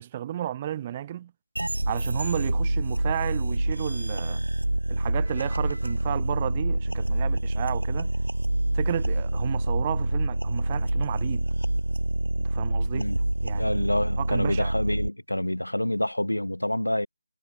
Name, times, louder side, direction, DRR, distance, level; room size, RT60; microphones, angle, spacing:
voice 1, 0.0-1.3 1.9-4.4 4.9-8.1 8.7-11.5 12.4-13.1 13.4-13.8 14.2-14.7, right 11 dB, 20° right, 1.5 m, -33 dB
sound 1, 1.6-15.1, right 1 dB, 80° right, 4.0 m, -26 dB
voice 2, 13.5-17.1, left 1 dB, 90° left, 2.9 m, -27 dB
figure-of-eight pair, 160°, 0 cm